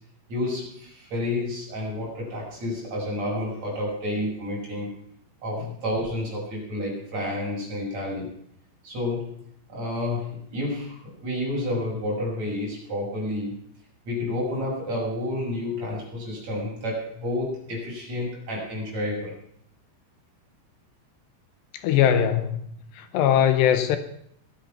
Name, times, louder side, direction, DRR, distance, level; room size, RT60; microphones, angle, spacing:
voice 1, 0.3-5.0 5.4-8.3 8.8-9.4 9.7-13.5 14.1-19.3, left 1 dB, 35° right, -4 dB, 7.2 m, -30 dB
voice 2, 21.8-22.6 23.1-24.0, left 9 dB, 75° left, 10 dB, 2.7 m, -20 dB
21.5 x 8.8 x 5.9 m, 0.69 s
omnidirectional pair, 5.8 m